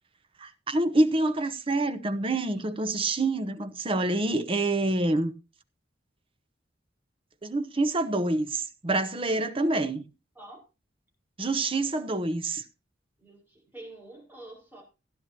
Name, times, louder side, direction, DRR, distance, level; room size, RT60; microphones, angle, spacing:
voice 1, 0.4-5.3 7.4-10.1 11.4-12.6, right 2 dB, 30° right, 0.9 m, -27 dB
voice 2, 13.2-14.8, right 2 dB, 10° right, 5.0 m, -47 dB
16.0 x 10.5 x 2.8 m
head